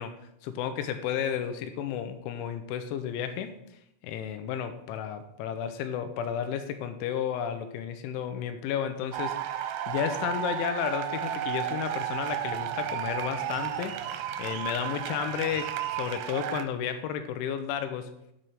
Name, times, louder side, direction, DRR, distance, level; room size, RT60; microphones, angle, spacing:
voice 1, 0.0-3.6 4.0-14.0 14.4-18.1, left 8 dB, 85° left, 9 dB, 2.8 m, -32 dB
sound 1, 9.1-16.7, right 10 dB, 85° right, 3.2 m, -33 dB
7.6 x 5.6 x 6.5 m, 0.78 s
omnidirectional pair, 5.9 m